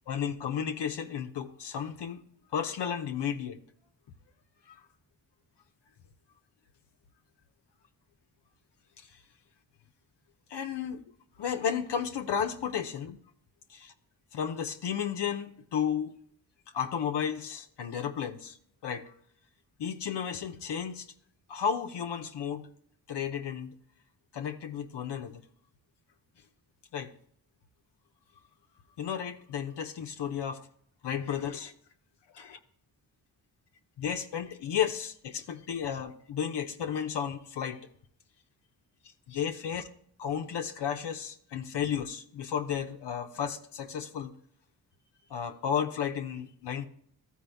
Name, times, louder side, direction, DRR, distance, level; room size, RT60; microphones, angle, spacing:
voice 1, 0.1-2.2 2.5-3.6 4.7-4.8 10.5-11.0 11.4-13.2 13.7-13.9 14.3-16.1 16.7-18.6 18.8-19.2 19.8-21.1 21.5-22.7 23.1-23.7 24.3-25.4 26.9-27.1 29.0-30.6 31.0-31.7 32.4-32.6 34.0-37.8 39.3-39.8 40.2-44.3 45.3-46.9, left 8 dB, 65° left, 5 dB, 0.8 m, -33 dB
13.0 x 4.8 x 3.4 m, 0.64 s
supercardioid pair, 50°, 45 cm